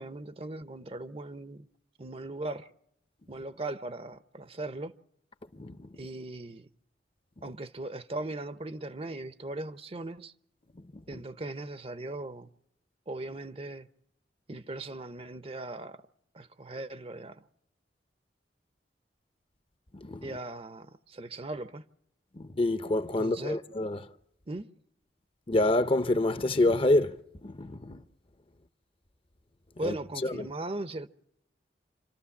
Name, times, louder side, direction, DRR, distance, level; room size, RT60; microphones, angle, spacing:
voice 1, 0.0-1.7 2.0-2.7 3.3-4.9 5.9-6.7 7.4-10.3 11.1-12.5 13.1-13.9 14.5-16.0 16.3-17.4 20.2-21.9 23.2-23.6 24.5-24.7 29.8-31.1, right 2 dB, 35° right, 0.7 m, -38 dB
voice 2, 20.0-20.4 22.4-24.0 25.5-27.1 27.4-28.0 29.8-29.9 30.2-30.5, left 2 dB, 30° left, 0.7 m, -27 dB
27.5 x 13.0 x 7.1 m
head